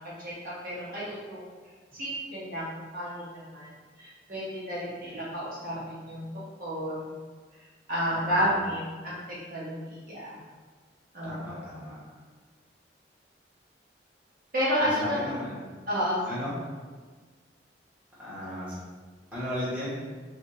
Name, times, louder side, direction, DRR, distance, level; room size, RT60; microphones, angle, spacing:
voice 1, 0.2-1.4 1.9-3.7 4.0-6.3 6.6-7.2 7.9-10.3 11.1-11.7 14.5-15.3 15.9-16.2, equal, 50° right, -8 dB, 1.1 m, -31 dB
voice 2, 8.1-8.6 11.2-12.0 14.8-15.6 16.2-16.5 18.2-18.8 19.3-19.9, equal, 10° right, -11 dB, 1.5 m, -35 dB
6.3 x 2.4 x 2.8 m, 1.5 s
head